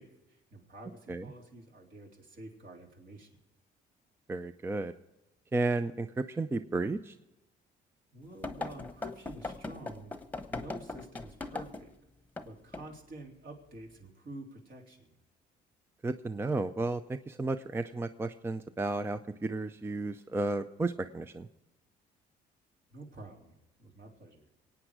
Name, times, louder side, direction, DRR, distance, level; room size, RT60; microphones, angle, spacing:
voice 1, 0.0-3.4 8.1-10.1 10.5-11.9 12.4-15.2 22.9-24.5, right 1 dB, 55° right, 1 dB, 3.4 m, -49 dB
voice 2, 4.3-4.9 5.5-7.1 16.0-17.0 17.3-21.5, right 3 dB, 15° right, 10 dB, 0.5 m, -33 dB
sound 1, 8.4-11.9 12.4-12.5 12.7-12.9, left 3 dB, 10° left, 1.1 m, -39 dB
24.0 x 9.1 x 4.9 m, 0.96 s
cardioid pair, 110°, 17 cm